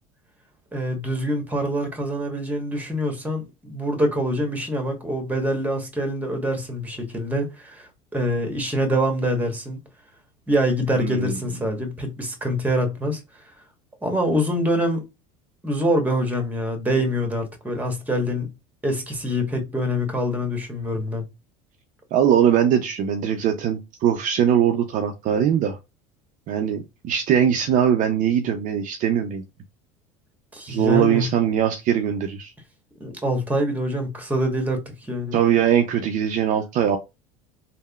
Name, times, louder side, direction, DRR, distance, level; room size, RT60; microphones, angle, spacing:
voice 1, 0.7-9.8 10.5-13.2 14.0-15.0 15.6-18.5 18.8-21.3 30.5-31.3 33.0-35.4, equal, 10° right, 1.0 m, -25 dB
voice 2, 10.9-11.4 22.1-25.8 26.5-29.4 30.7-32.5 35.3-37.0, right 9 dB, 50° right, 0.4 m, -21 dB
3.4 x 2.0 x 2.2 m
hypercardioid pair, 80°, 17 cm